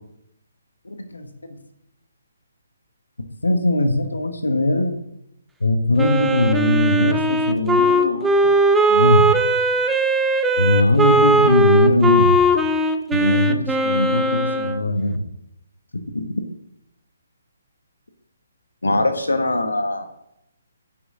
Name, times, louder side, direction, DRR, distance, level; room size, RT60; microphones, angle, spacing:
voice 1, 0.8-1.3 3.4-5.0 5.6-8.5 8.9-9.3 10.6-12.4 13.1-15.2 16.1-16.4 18.8-20.1, left 2 dB, 90° left, 6 dB, 1.4 m, -20 dB
Wind instrument woodwind instrument, 6.0-14.8, right 1 dB, 5° right, 0.6 m, -19 dB
11.5 x 6.0 x 3.8 m, 0.80 s
figure-of-eight pair, 145°, 0 cm